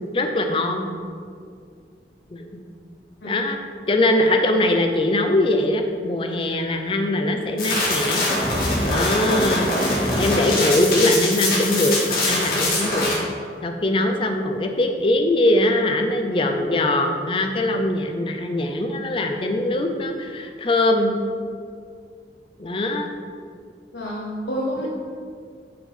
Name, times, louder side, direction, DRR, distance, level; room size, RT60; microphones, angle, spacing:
voice 1, 0.1-0.9 2.3-2.5 3.2-3.6 3.9-8.2 8.9-13.2 13.6-21.1 22.6-23.1, left 1 dB, 30° left, 4 dB, 0.5 m, -22 dB
sound 1, 7.6-13.1, left 1 dB, 55° left, 1.9 m, -23 dB
voice 2, 23.9-24.9, equal, 75° left, -5 dB, 0.9 m, -28 dB
8.6 x 3.7 x 5.5 m, 2.2 s
head